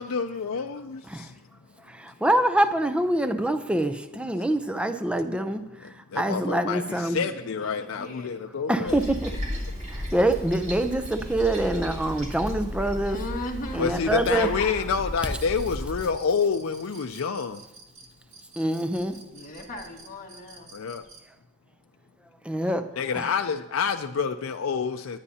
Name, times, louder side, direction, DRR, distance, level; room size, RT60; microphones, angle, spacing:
voice 1, 0.0-1.3 5.8-9.0 11.7-11.8 13.8-17.6 20.7-21.0 23.0-25.2, left 5 dB, 75° left, 0.5 m, -28 dB
voice 2, 1.9-7.2 8.7-9.3 9.9-13.2 13.7-14.5 18.6-19.2 22.4-22.9 23.1-23.3, right 1 dB, 5° right, 0.5 m, -25 dB
voice 3, 6.5-8.4 13.0-15.0 19.3-20.7, left 2 dB, 40° left, 1.8 m, -38 dB
Toilet flush, 8.8-16.0, left 1 dB, 35° right, 3.3 m, -35 dB
sound 1, 15.2-21.3, right 3 dB, 85° right, 1.9 m, -51 dB
19.5 x 9.7 x 2.8 m
head